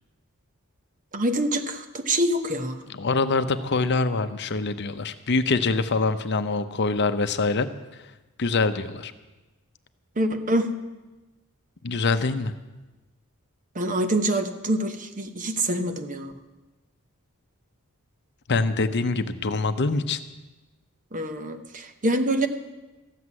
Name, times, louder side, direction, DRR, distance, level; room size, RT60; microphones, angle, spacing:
voice 1, 1.1-2.8 10.2-10.7 13.7-16.3 21.1-22.5, right 1 dB, 40° right, 8 dB, 1.1 m, -25 dB
voice 2, 2.9-7.7 8.4-9.1 11.8-12.5 18.5-20.2, left 3 dB, 50° left, 10 dB, 0.7 m, -24 dB
14.0 x 7.9 x 9.7 m, 1.1 s
head